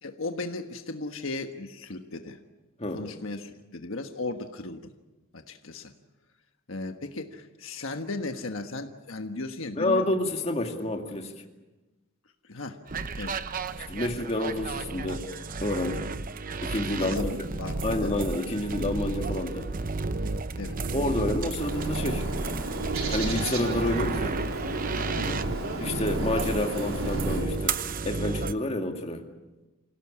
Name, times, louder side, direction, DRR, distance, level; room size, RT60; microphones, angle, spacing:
voice 1, 0.0-2.4 2.9-4.8 5.3-5.9 6.7-10.0 12.4-12.8 13.2-13.4 17.0-18.2 20.6-20.8 25.1-25.4, left 2 dB, 70° left, 5 dB, 1.4 m, -36 dB
voice 2, 9.8-11.3 13.9-15.2 15.6-16.1 16.6-17.3 17.8-19.7 20.9-22.3 23.1-24.4 25.8-27.8 28.1-29.3, left 1 dB, 30° left, 3 dB, 2.3 m, -29 dB
sound 1, 12.9-28.5, right 3 dB, 40° right, 0.8 m, -32 dB
Bird, 21.5-27.5, right 2 dB, 80° right, 4.4 m, -34 dB
27.5 x 17.0 x 8.5 m, 1.2 s
head